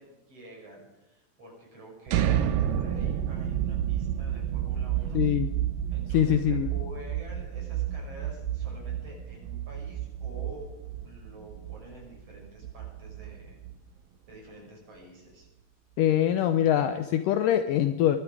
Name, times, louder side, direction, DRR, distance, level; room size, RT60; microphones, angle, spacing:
voice 1, 0.0-5.2 5.9-10.7 11.0-13.6 14.3-15.5, right 1 dB, 40° right, -2 dB, 7.2 m, -48 dB
sound 1, 2.1-13.9, right 10 dB, 75° right, 2.6 m, -30 dB
voice 2, 5.1-5.5 6.1-6.7 16.0-18.2, left 11 dB, 75° left, 9 dB, 2.1 m, -23 dB
22.0 x 12.5 x 4.8 m, 1.1 s
omnidirectional pair, 4.3 m